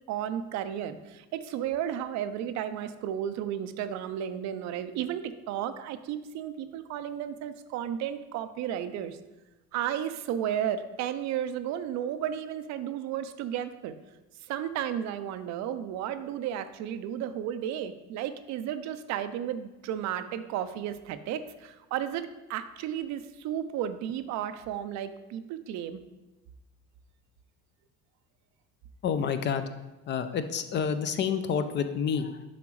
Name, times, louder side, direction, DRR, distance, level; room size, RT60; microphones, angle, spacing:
voice 1, 0.1-9.2 9.7-13.9 14.5-26.0, right 10 dB, 65° right, 11 dB, 0.5 m, -33 dB
voice 2, 29.0-29.7 30.1-32.4, left 7 dB, 40° left, 10 dB, 0.4 m, -29 dB
7.0 x 5.0 x 3.1 m, 1.1 s
cardioid pair, 125°, 30 cm